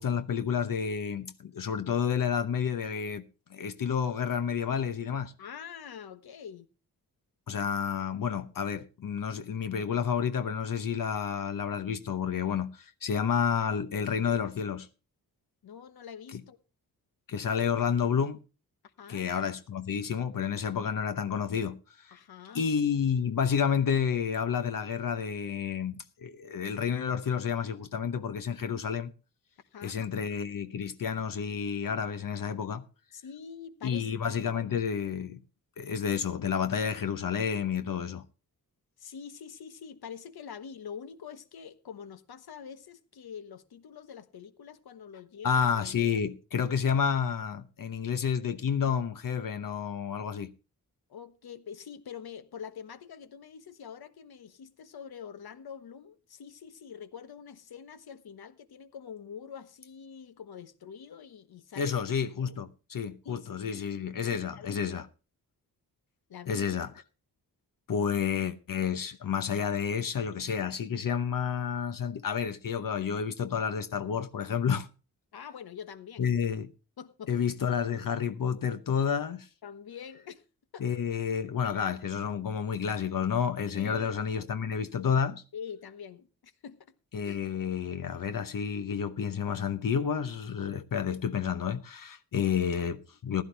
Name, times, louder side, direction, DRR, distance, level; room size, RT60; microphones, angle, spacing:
voice 1, 0.0-3.2 3.5-5.3 7.5-14.9 16.3-16.4 17.3-18.4 19.1-22.2 22.5-29.1 29.8-32.8 33.8-35.4 35.8-38.2 45.4-50.5 61.8-65.1 66.5-66.9 67.9-74.9 76.2-76.7 77.3-79.5 80.8-85.4 87.1-93.4, left 7 dB, 60° left, 0.9 m, -30 dB
voice 2, 5.4-6.7 15.6-16.6 19.0-19.3 22.1-22.6 29.7-30.0 33.1-34.1 39.0-45.7 46.1-46.2 51.1-62.0 63.2-64.8 66.3-66.7 75.3-76.3 77.0-77.3 77.7-77.8 79.6-80.4 80.7-80.9 83.7-84.1 85.5-86.9 87.2-87.4, left 7 dB, 75° left, 1.2 m, -45 dB
15.5 x 11.5 x 3.3 m
wide cardioid pair, 90°, 37 cm